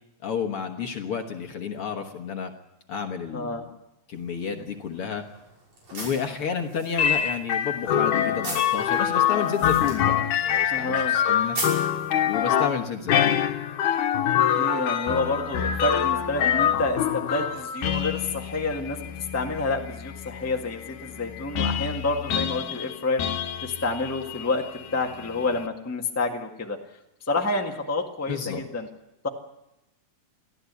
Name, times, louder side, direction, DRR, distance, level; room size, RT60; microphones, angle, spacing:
voice 1, 0.2-2.5 2.9-3.7 4.1-5.2 5.9-11.6 12.3-13.4 28.3-28.6, left 6 dB, 55° left, 5 dB, 1.9 m, -31 dB
voice 2, 3.3-3.6 10.7-11.1 14.6-23.2 23.6-24.6 24.9-26.8 27.3-28.9 29.2-29.3, left 3 dB, 5° left, 1 dB, 1.1 m, -28 dB
sound 1, 4.1-12.7, right 2 dB, 70° right, 7.5 m, -40 dB
sound 2, 7.0-25.7, left 9 dB, 90° left, 2.5 m, -26 dB
23.5 x 14.5 x 8.3 m, 0.90 s
omnidirectional pair, 3.4 m